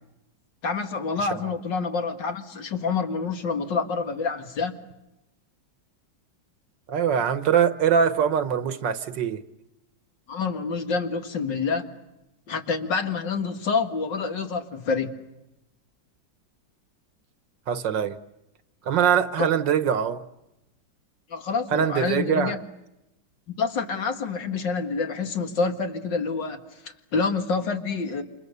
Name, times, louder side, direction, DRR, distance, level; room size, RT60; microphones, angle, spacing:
voice 1, 0.6-4.8 10.3-11.9 12.5-15.2 21.3-22.6 23.5-26.6 26.8-28.2, left 4 dB, 70° left, 2.6 m, -27 dB
voice 2, 6.9-9.4 17.7-18.2 18.9-20.2 21.7-22.5, right 8 dB, 70° right, 1.8 m, -23 dB
29.0 x 27.5 x 6.8 m
omnidirectional pair, 2.0 m